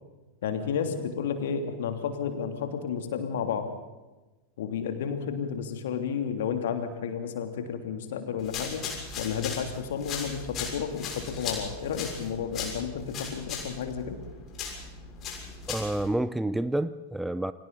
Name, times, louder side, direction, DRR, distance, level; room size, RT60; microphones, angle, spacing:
voice 1, 0.4-3.7 4.6-8.8 9.2-14.2, left 7 dB, 55° left, 6 dB, 3.0 m, -32 dB
sound 1, 8.4-16.1, left 5 dB, 30° left, 6.3 m, -38 dB
voice 2, 15.7-17.5, right 1 dB, 5° right, 15 dB, 0.7 m, -29 dB
29.5 x 25.0 x 4.1 m, 1.1 s
figure-of-eight pair, 90°, 0 cm